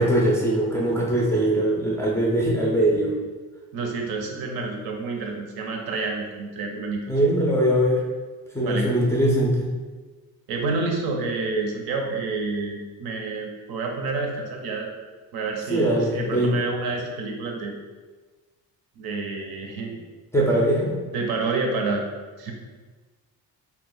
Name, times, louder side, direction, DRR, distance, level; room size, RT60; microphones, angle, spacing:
voice 1, 0.0-3.1 7.1-8.0 8.5-9.7 15.7-16.5 20.3-20.9, right 1 dB, 10° left, -5 dB, 0.3 m, -21 dB
voice 2, 3.7-7.1 8.6-8.9 10.5-14.9 15.3-17.7 19.0-20.0 21.1-22.1 22.4-22.5, right 3 dB, 75° right, 2 dB, 0.7 m, -28 dB
2.8 x 2.2 x 3.8 m, 1.3 s
cardioid pair, 155°, 38 cm